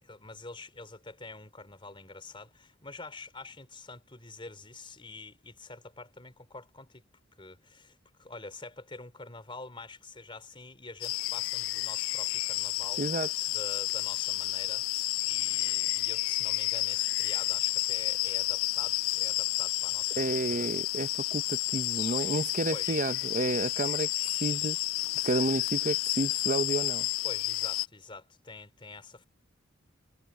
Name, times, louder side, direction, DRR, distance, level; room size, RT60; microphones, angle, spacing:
voice 1, 0.0-7.1 7.4-13.0 13.5-14.8 15.2-20.7 22.7-23.0 27.2-29.3, left 3 dB, 25° left, 4.0 m, -46 dB
sound 1, 11.0-27.9, left 19 dB, 90° left, 0.3 m, -31 dB
voice 2, 13.0-13.3 20.2-24.8 25.2-27.1, right 2 dB, 40° right, 0.9 m, -31 dB
head